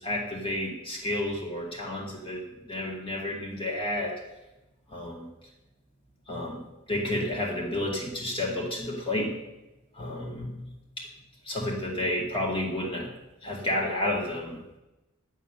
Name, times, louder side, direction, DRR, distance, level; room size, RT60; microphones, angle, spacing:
voice 1, 0.0-4.2 4.9-5.3 6.3-6.6 6.9-9.3 9.9-10.7 11.0-11.1 11.4-13.1 13.4-14.6, left 1 dB, 25° left, -1 dB, 2.1 m, -31 dB
11.0 x 6.6 x 9.1 m, 0.97 s
head